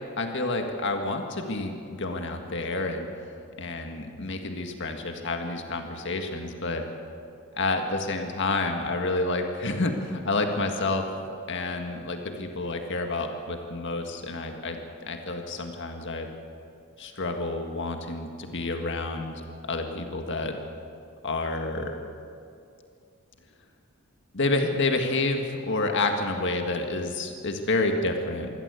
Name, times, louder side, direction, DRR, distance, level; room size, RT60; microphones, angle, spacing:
voice 1, 0.2-3.1 3.6-6.8 7.5-11.0 11.5-16.3 17.0-20.5 21.2-22.0 24.3-28.5, left 2 dB, 55° left, 4 dB, 1.8 m, -29 dB
24.0 x 16.5 x 8.3 m, 2.5 s
head